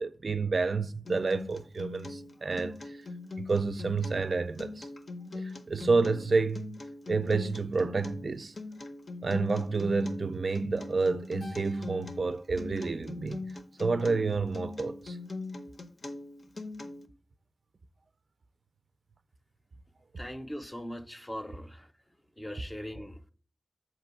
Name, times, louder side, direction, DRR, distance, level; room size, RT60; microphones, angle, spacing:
voice 1, 0.0-3.0 3.4-4.9 5.3-6.8 7.1-8.5 9.2-13.4 13.8-15.2, right 4 dB, 60° right, 0.3 m, -29 dB
Acoustic guitar, 1.0-17.1, left 3 dB, 55° left, 0.7 m, -41 dB
Keyboard (musical), 11.4-13.9, left 1 dB, 80° left, 1.2 m, -55 dB
voice 2, 20.2-21.9 22.4-23.2, equal, 15° left, 0.6 m, -40 dB
7.3 x 3.0 x 5.6 m
wide cardioid pair, 75°, 0 cm